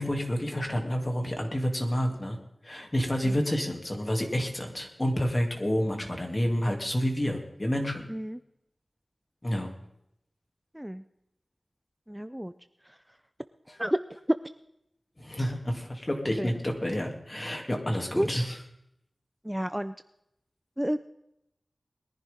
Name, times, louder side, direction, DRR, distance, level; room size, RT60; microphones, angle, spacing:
voice 1, 0.0-2.4 2.6-8.1 9.4-9.7 15.2-18.5, equal, 35° left, 3 dB, 3.0 m, -29 dB
voice 2, 8.1-8.4 10.7-11.0 12.1-12.5 12.8-13.0 13.8-14.2 16.4-16.5 18.2-18.3 19.4-20.0 20.8-21.0, equal, 10° right, 11 dB, 0.6 m, -31 dB
21.5 x 10.5 x 3.8 m, 0.80 s
cardioid pair, 40°, 0 cm